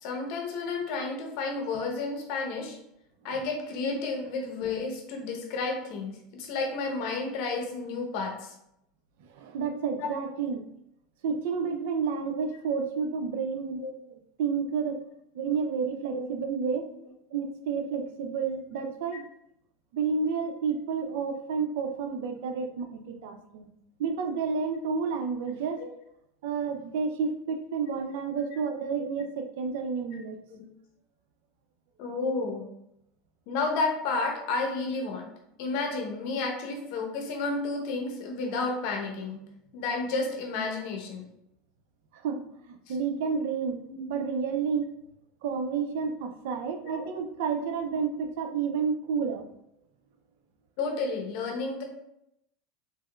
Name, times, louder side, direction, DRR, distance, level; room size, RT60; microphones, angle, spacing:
voice 1, 0.0-2.8 3.2-8.5 10.0-10.1 13.8-13.9 16.1-16.3 25.8-25.9 28.5-28.6 30.5-30.7 32.0-32.7 33.5-35.3 35.6-39.4 39.7-41.2 42.9-43.0 43.3-43.4 43.9-44.0 46.8-47.1 50.8-51.8, left 3 dB, 65° left, 2 dB, 0.7 m, -31 dB
voice 2, 9.4-10.7 11.2-13.9 14.4-15.0 15.3-16.9 17.3-19.3 19.9-23.7 24.0-25.8 26.4-30.4 42.2-43.8 44.1-44.9 45.4-49.5, right 5 dB, 75° right, 6 dB, 0.4 m, -30 dB
3.4 x 2.8 x 2.2 m, 0.79 s
supercardioid pair, 110°, 0 cm